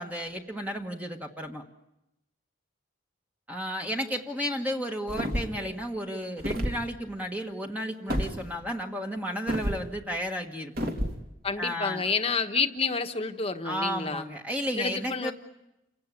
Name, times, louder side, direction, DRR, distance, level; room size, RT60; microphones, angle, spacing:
voice 1, 0.0-1.6 3.5-10.9 11.6-12.0 13.6-15.3, equal, 10° right, 2 dB, 1.4 m, -33 dB
sound 1, 5.1-5.6 6.4-6.8 8.1-8.3 9.5-9.8 10.8-11.2, equal, 50° right, 3.2 m, -29 dB
voice 2, 11.4-14.2 14.8-15.3, left 4 dB, 30° left, 6 dB, 1.3 m, -29 dB
29.0 x 17.5 x 9.8 m, 0.89 s
head